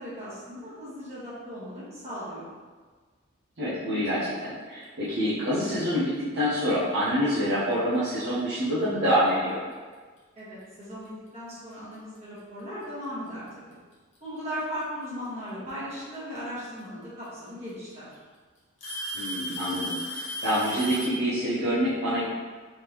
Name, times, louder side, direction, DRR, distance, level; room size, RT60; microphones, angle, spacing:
voice 1, 0.0-2.5 10.3-13.8 14.2-18.1, equal, 30° right, -10 dB, 1.4 m, -37 dB
voice 2, 3.6-9.6 19.1-22.2, equal, 50° right, -11 dB, 0.8 m, -26 dB
Alarm / Tick-tock, 7.3-7.5 8.4-8.5 9.3-9.4 11.0-11.1 12.4-12.5 13.7-14.2 15.9-16.0 17.2-17.3 17.7-18.1 18.8-21.2, equal, 30° left, 0.8 m, -35 dB
3.6 x 3.4 x 3.0 m, 1.4 s
head